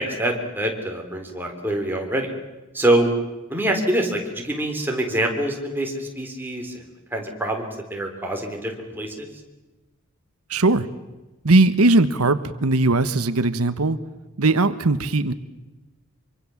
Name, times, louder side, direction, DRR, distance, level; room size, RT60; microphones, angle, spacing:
voice 1, 0.0-2.3 2.7-3.1 3.5-6.8 7.1-9.3, right 1 dB, 10° right, 2 dB, 3.9 m, -25 dB
voice 2, 10.5-10.9 11.4-14.0 14.4-15.3, right 2 dB, 90° right, 12 dB, 1.2 m, -19 dB
25.5 x 24.5 x 7.3 m, 1.1 s
head